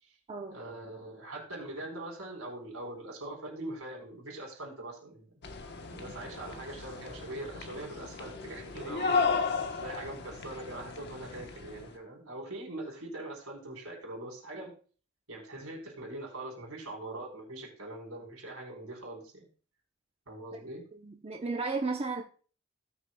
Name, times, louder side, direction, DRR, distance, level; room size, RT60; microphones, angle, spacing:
voice 1, 0.5-5.3 5.9-9.4 9.8-14.7 15.3-19.5 20.3-20.8, right 2 dB, 75° right, 4.0 m, -42 dB
sound 1, 5.4-11.9, left 4 dB, 50° left, 1.0 m, -35 dB
voice 2, 21.0-22.2, right 3 dB, 30° right, 0.7 m, -33 dB
17.5 x 6.5 x 2.2 m
head